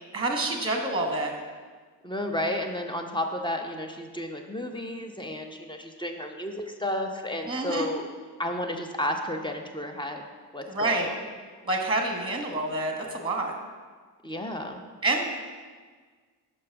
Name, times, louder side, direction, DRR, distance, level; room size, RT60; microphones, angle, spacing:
voice 1, 0.1-1.3 7.4-7.9 10.7-11.1 11.6-13.5 15.0-15.2, right 2 dB, 10° right, 2 dB, 1.2 m, -27 dB
voice 2, 2.0-8.1 8.4-10.2 10.5-11.1 14.2-14.8, left 1 dB, 10° left, 4 dB, 0.8 m, -32 dB
5.4 x 5.1 x 5.0 m, 1.5 s
hypercardioid pair, 40°, 45 cm